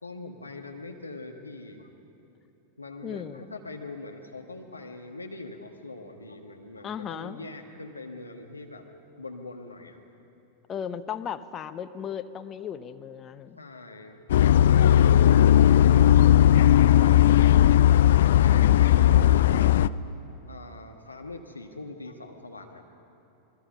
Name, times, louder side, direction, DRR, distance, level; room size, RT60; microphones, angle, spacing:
voice 1, 0.0-1.9 2.8-8.8 9.2-10.0 13.6-17.9 18.4-19.8 20.5-22.8, left 2 dB, 80° left, 3 dB, 1.4 m, -42 dB
voice 2, 3.0-3.5 6.8-7.4 10.7-13.6, left 8 dB, 25° left, 10 dB, 0.9 m, -36 dB
sound 1, 14.3-19.9, left 11 dB, 60° left, 0.4 m, -17 dB
27.5 x 21.0 x 5.5 m, 3.0 s
figure-of-eight pair, 90°, 0 cm